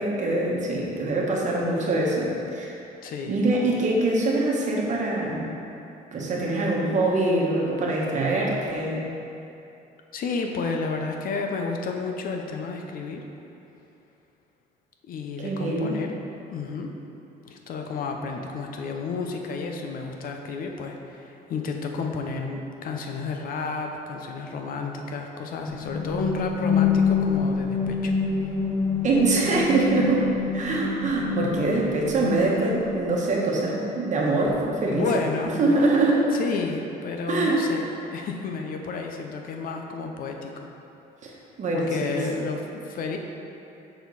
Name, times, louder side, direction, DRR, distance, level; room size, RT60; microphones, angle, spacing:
voice 1, 0.0-2.7 3.3-5.5 6.1-9.0 15.4-16.0 29.0-35.1 35.6-36.3 37.3-37.6 41.2-41.3 41.6-42.2, right 2 dB, 45° right, -3 dB, 1.2 m, -24 dB
voice 2, 3.0-3.4 10.1-13.2 15.1-16.1 16.5-16.9 17.4-28.1 34.9-35.9 36.3-40.7 41.7-43.2, left 4 dB, 55° left, 3 dB, 0.6 m, -31 dB
sound 1, 25.7-33.5, left 5 dB, 15° left, 0.7 m, -26 dB
6.7 x 4.2 x 4.0 m, 2.8 s
cardioid pair, 110°, 17 cm